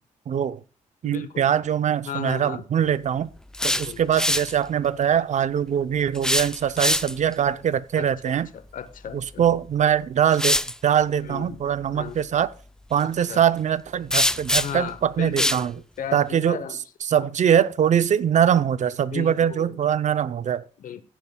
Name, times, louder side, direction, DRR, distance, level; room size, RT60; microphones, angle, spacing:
voice 1, 0.3-0.6 1.0-3.3 3.8-8.5 9.1-12.5 12.9-15.8 16.1-16.6 17.1-20.6, right 9 dB, 55° right, 0.6 m, -22 dB
voice 2, 1.0-1.5 2.1-2.6 3.6-4.0 8.0-9.4 11.2-11.6 11.9-12.2 13.0-13.4 14.6-15.7 16.0-16.8 17.2-17.3 19.1-19.8 20.8-21.0, left 9 dB, 75° left, 0.9 m, -36 dB
sound 1, 3.4-4.5 6.1-7.3 9.4-9.5 10.3-10.7 14.1-14.9 15.4-15.6, left 1 dB, 5° left, 0.4 m, -23 dB
15.0 x 10.0 x 2.3 m
cardioid pair, 75°, 14 cm